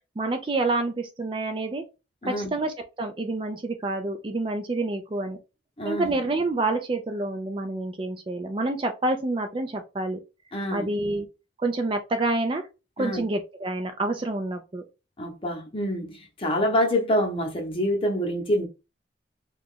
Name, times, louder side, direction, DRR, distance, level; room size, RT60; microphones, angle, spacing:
voice 1, 0.2-1.8 2.2-5.4 5.8-10.2 10.7-11.3 11.6-12.7 13.0-14.8, right 2 dB, 30° right, 0.4 m, -28 dB
voice 2, 5.8-6.1 10.5-10.9 13.0-13.2 15.2-18.6, equal, 30° left, 0.8 m, -26 dB
2.9 x 2.4 x 3.6 m
head